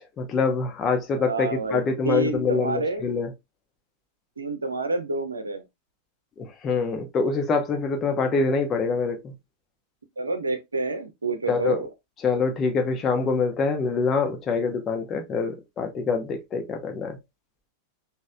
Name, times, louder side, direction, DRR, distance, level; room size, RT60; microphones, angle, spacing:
voice 1, 0.0-3.3 6.4-9.3 11.5-11.9 12.2-17.2, left 4 dB, 25° left, 1.1 m, -25 dB
voice 2, 1.2-3.0 4.4-5.6 10.2-11.9, right 2 dB, 75° right, 0.7 m, -28 dB
6.3 x 2.9 x 2.4 m
figure-of-eight pair, 90°, 0 cm